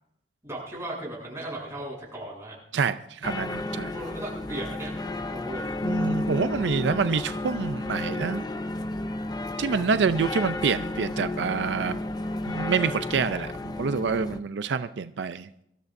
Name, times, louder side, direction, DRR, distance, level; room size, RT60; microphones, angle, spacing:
voice 1, 0.4-2.6 3.9-5.7, right 1 dB, 15° right, -4 dB, 7.5 m, -37 dB
voice 2, 2.7-3.9 5.8-8.4 9.6-12.0 12.5-15.5, right 5 dB, 85° right, 12 dB, 0.5 m, -27 dB
sound 1, 3.2-14.4, left 2 dB, 25° left, 0.6 m, -32 dB
25.0 x 13.5 x 2.6 m, 0.78 s
head